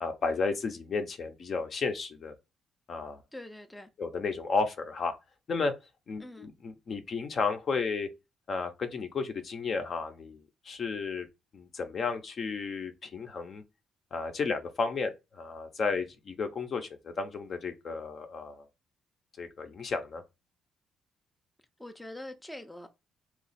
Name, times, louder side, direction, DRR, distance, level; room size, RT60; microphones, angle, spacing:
voice 1, 0.0-2.3 2.9-3.2 4.0-5.1 5.5-5.7 6.1-8.1 8.5-11.3 11.5-13.6 14.1-18.7 19.4-20.2, left 4 dB, 50° left, 0.6 m, -33 dB
voice 2, 3.3-3.9 6.2-6.5 21.8-22.9, left 1 dB, 10° left, 0.5 m, -44 dB
3.0 x 2.3 x 4.0 m
cardioid pair, 90°, 0 cm